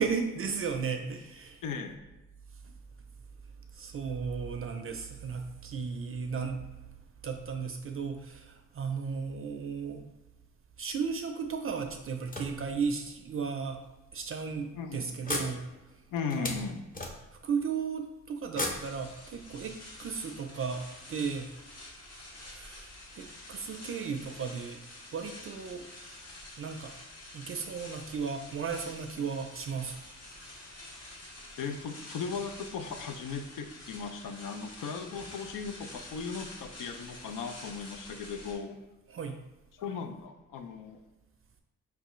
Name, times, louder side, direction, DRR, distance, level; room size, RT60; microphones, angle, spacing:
voice 1, 0.0-1.6 2.6-2.7 3.7-6.6 7.2-10.0 10.8-13.8 14.1-15.7 16.4-16.7 17.3-21.5 22.4-22.9 23.1-24.8 25.1-25.9 26.6-26.9 27.3-30.0 39.1-39.4, right 5 dB, 45° right, 5 dB, 0.4 m, -35 dB
voice 2, 1.6-2.0 14.7-15.1 16.1-16.9 31.6-38.8 39.8-41.0, left 5 dB, 80° left, 7 dB, 0.5 m, -37 dB
sound 1, 11.8-13.1 13.8-13.9 14.3-14.5 15.2-17.6 18.5-19.7, left 2 dB, 25° left, 0.8 m, -38 dB
sound 2, 18.6-38.5, left 1 dB, 50° left, 1.4 m, -48 dB
4.8 x 3.3 x 3.0 m, 1.0 s
cardioid pair, 80°, 31 cm